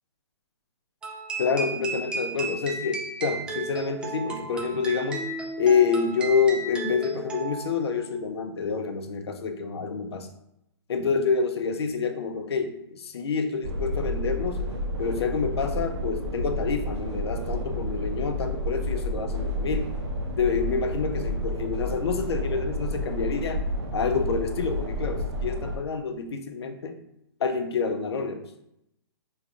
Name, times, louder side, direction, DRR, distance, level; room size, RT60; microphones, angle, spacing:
sound 1, 1.0-7.8, right 3 dB, 5° right, 0.4 m, -34 dB
voice 1, 1.4-5.2 5.6-10.3 10.9-14.6 15.0-19.9 20.4-23.7 23.9-27.0 27.4-28.5, left 5 dB, 65° left, 7 dB, 0.5 m, -27 dB
sound 2, 13.6-25.8, left 1 dB, 85° right, 0.8 m, -30 dB
4.6 x 3.1 x 2.4 m, 0.80 s
figure-of-eight pair, 130°, 14 cm